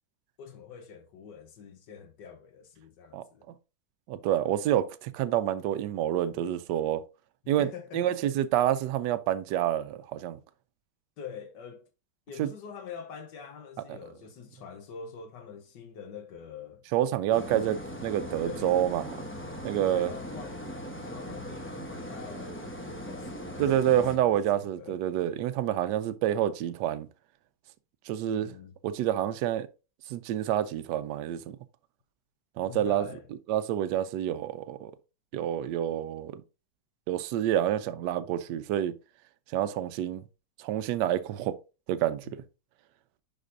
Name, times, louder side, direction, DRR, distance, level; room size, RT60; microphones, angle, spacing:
voice 1, 0.4-3.5 7.4-8.0 11.2-11.8 12.3-16.8 18.4-18.8 19.9-20.7 21.0-25.0 28.3-28.7 32.6-33.3, left 7 dB, 80° left, 1.5 m, -45 dB
voice 2, 4.1-7.0 7.5-7.7 7.9-10.4 12.4-12.5 13.9-14.0 16.9-19.1 19.6-20.1 23.6-27.1 28.1-28.5 28.8-29.7 30.1-31.6 32.6-33.0 33.5-34.9 35.3-36.4 37.1-38.9 39.5-40.2 40.6-41.5 41.9-42.4, right 11 dB, 80° right, 1.2 m, -28 dB
sound 1, 17.3-24.2, equal, 10° left, 0.6 m, -39 dB
10.5 x 4.1 x 2.6 m
omnidirectional pair, 1.9 m